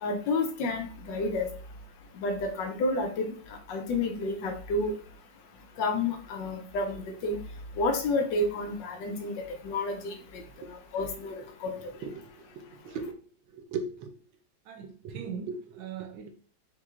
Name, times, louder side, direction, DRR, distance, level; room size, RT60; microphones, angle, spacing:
voice 1, 0.0-1.5 2.2-3.3 3.7-4.9 5.8-7.4 7.8-10.4 10.9-11.7, left 2 dB, 70° left, 4 dB, 1.3 m, -30 dB
voice 2, 11.4-11.7 12.2-13.0 13.5-14.1 14.7-16.3, right 5 dB, 80° right, 4 dB, 1.5 m, -39 dB
5.6 x 3.1 x 2.4 m, 0.43 s
omnidirectional pair, 2.1 m